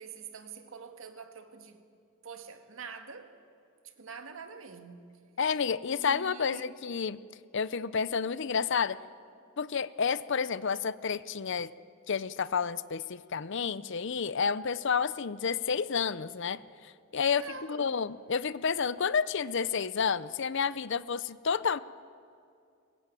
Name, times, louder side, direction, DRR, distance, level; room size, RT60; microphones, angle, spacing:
voice 1, 0.0-1.8 2.2-3.4 3.8-5.3 5.9-6.7 17.3-18.0, right 5 dB, 70° right, 1.8 m, -46 dB
voice 2, 5.4-7.2 7.5-9.0 9.6-11.7 12.1-17.4 17.7-21.8, left 6 dB, 60° left, 0.6 m, -30 dB
23.0 x 20.5 x 9.1 m
head